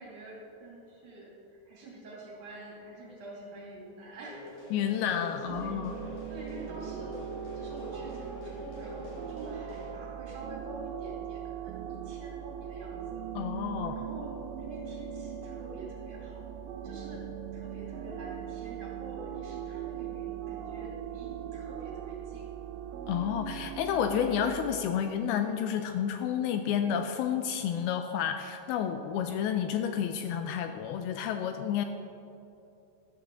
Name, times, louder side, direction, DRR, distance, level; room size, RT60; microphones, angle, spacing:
voice 1, 0.0-4.4 5.3-13.2 13.9-16.5 16.8-17.3 17.5-22.5, right 1 dB, 50° right, -4 dB, 3.8 m, -47 dB
sound 1, 4.3-9.9, left 1 dB, 50° left, 3.2 m, -45 dB
voice 2, 4.7-6.0 13.4-14.0 23.1-31.9, left 8 dB, 80° left, 7 dB, 2.4 m, -30 dB
sound 2, 5.5-24.8, right 9 dB, 80° right, 2.1 m, -40 dB
13.0 x 13.0 x 3.9 m, 2.7 s
omnidirectional pair, 4.7 m